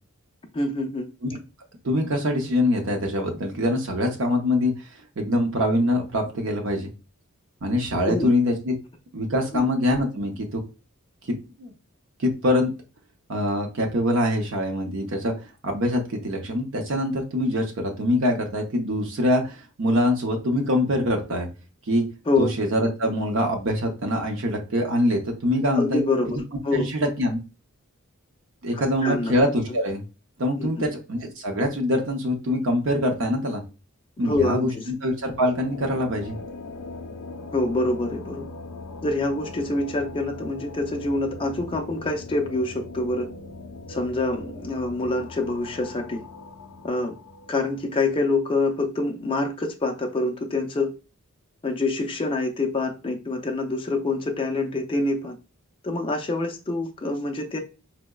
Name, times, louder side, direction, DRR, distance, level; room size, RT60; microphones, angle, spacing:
voice 1, 0.5-1.1 8.1-8.3 9.5-9.6 22.3-22.5 25.8-26.9 28.8-29.3 30.6-30.9 34.2-34.8 37.5-38.5 39.0-43.3 43.9-46.2 46.8-47.1 47.5-50.9 51.6-55.4 55.8-57.6, left 2 dB, 25° left, 0.4 m, -26 dB
voice 2, 1.8-6.9 7.6-8.7 9.1-10.6 11.2-11.7 12.2-12.7 13.3-15.3 15.6-21.5 21.9-22.0 22.4-26.0 26.7-27.4 28.6-30.0 30.4-33.6 34.2-34.7 35.0-36.4, left 1 dB, 60° right, 0.6 m, -24 dB
sound 1, 35.1-48.3, left 3 dB, 80° left, 0.5 m, -40 dB
4.6 x 2.0 x 2.2 m
head